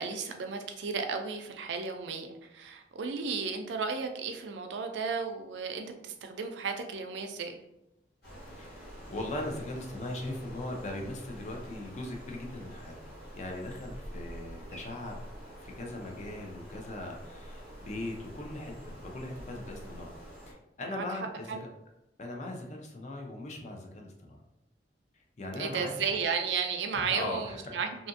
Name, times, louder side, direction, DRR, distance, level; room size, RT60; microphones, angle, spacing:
voice 1, 0.0-7.6 20.9-21.0 21.5-21.6 25.6-27.9, right 5 dB, 75° right, 5 dB, 0.4 m, -34 dB
sound 1, 8.2-20.5, equal, 60° left, 1.3 m, -47 dB
voice 2, 8.6-15.2 15.6-20.1 20.5-21.7 22.2-24.4 25.4-26.2 26.9-27.8, left 1 dB, 40° left, 1 dB, 0.5 m, -39 dB
2.7 x 2.5 x 2.5 m, 0.88 s
head